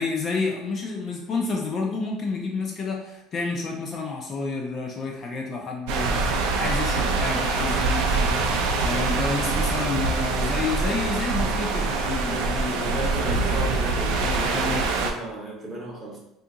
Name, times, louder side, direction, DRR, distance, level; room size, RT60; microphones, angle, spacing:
voice 1, 0.0-8.4 8.8-13.6 14.2-14.8, left 4 dB, 30° left, 0 dB, 0.4 m, -30 dB
sound 1, 5.9-15.1, right 3 dB, 75° right, 0.4 m, -24 dB
voice 2, 12.3-16.2, right 1 dB, 20° right, -2 dB, 0.8 m, -34 dB
2.7 x 2.4 x 3.7 m, 0.84 s
cardioid pair, 170°, 0 cm